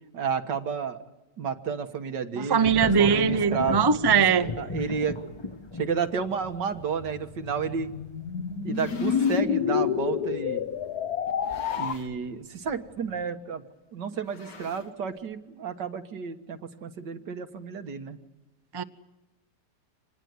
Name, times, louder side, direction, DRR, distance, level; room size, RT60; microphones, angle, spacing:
voice 1, 0.1-1.0 1.4-3.8 4.1-4.2 4.6-5.1 5.8-7.9 8.6-10.6 11.8-13.6 13.9-18.2, right 6 dB, 85° right, 2.1 m, -31 dB
voice 2, 2.4-4.5 18.7-18.8, right 6 dB, 20° right, 0.6 m, -21 dB
sound 1, 2.6-12.3 12.7-13.2, left 3 dB, 25° left, 0.7 m, -37 dB
sound 2, 7.0-11.9, left 7 dB, 65° left, 1.5 m, -28 dB
sound 3, 8.5-9.5 10.3-10.4 11.3-12.3 12.6-12.9 13.1-13.2 14.1-15.2, left 3 dB, 80° left, 2.6 m, -46 dB
26.0 x 20.0 x 9.6 m
omnidirectional pair, 1.8 m